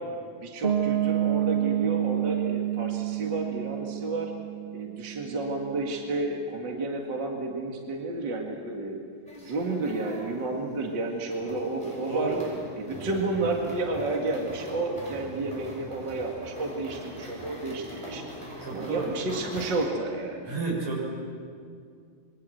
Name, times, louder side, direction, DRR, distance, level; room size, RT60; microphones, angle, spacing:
voice 1, 0.4-4.3 4.7-9.0 9.4-12.3 12.8-18.2 18.7-20.5, right 2 dB, 40° right, 1 dB, 2.5 m, -31 dB
Piano, 0.6-6.3, right 12 dB, 25° right, 1.4 m, -29 dB
sound 1, 9.3-19.9, equal, 10° right, 6.5 m, -42 dB
voice 2, 12.1-12.4 18.6-19.1 20.4-21.1, right 4 dB, 70° right, -3 dB, 8.4 m, -31 dB
26.5 x 23.5 x 7.9 m, 2.2 s
omnidirectional pair, 3.3 m